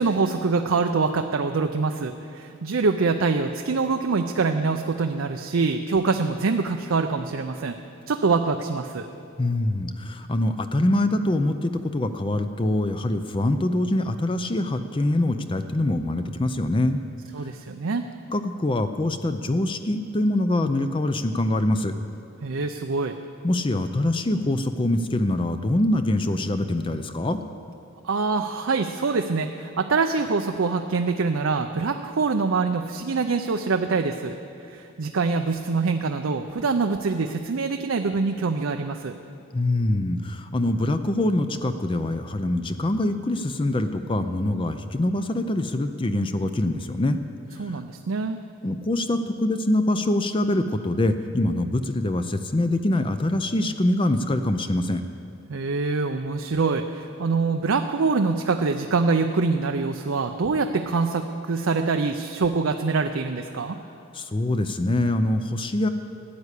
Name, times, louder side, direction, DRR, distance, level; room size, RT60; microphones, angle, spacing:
voice 1, 0.0-7.8 8.1-9.1 17.3-18.0 22.4-23.2 28.0-39.1 47.6-48.4 55.5-63.8, right 4 dB, 75° right, 5 dB, 0.5 m, -24 dB
voice 2, 9.4-17.0 18.3-21.9 23.4-27.4 39.5-47.2 47.6-47.7 48.6-55.0 64.1-65.9, left 1 dB, 25° left, 9 dB, 0.5 m, -24 dB
14.0 x 9.7 x 8.2 m, 2.6 s
head